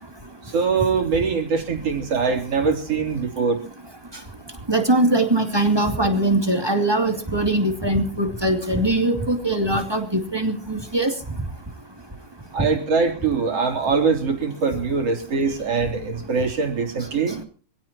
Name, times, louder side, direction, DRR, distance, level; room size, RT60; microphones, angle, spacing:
voice 1, 0.5-3.6 12.5-17.4, right 5 dB, 50° right, 3 dB, 4.1 m, -22 dB
voice 2, 4.7-11.1, right 1 dB, 10° right, 4 dB, 2.2 m, -21 dB
25.0 x 16.5 x 2.9 m, 0.39 s
omnidirectional pair, 3.4 m